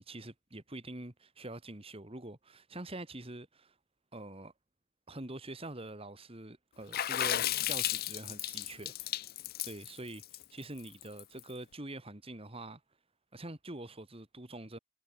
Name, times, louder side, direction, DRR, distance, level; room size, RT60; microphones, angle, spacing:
voice 1, 0.0-3.7 4.1-4.5 5.1-9.3 9.6-10.2 10.5-12.8 13.3-14.8, right 1 dB, 25° right, 1.9 m, -45 dB
Water / Splash splatter, 6.9-11.4, left 13 dB, 40° left, 0.4 m, -34 dB
head